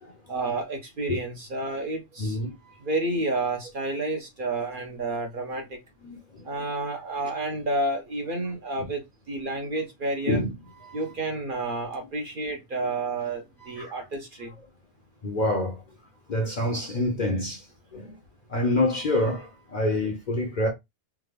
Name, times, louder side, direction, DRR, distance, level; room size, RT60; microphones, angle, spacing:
voice 1, 0.3-2.4 2.8-5.8 6.4-10.4 10.9-14.5, right 2 dB, 50° right, 0.8 m, -30 dB
voice 2, 2.2-2.7 6.0-6.5 7.2-7.3 8.8-8.9 10.3-11.1 13.6-13.9 15.2-15.8 16.3-17.7 17.9-18.2 18.5-20.7, left 1 dB, 45° left, 0.6 m, -27 dB
3.4 x 2.2 x 3.2 m
omnidirectional pair, 1.3 m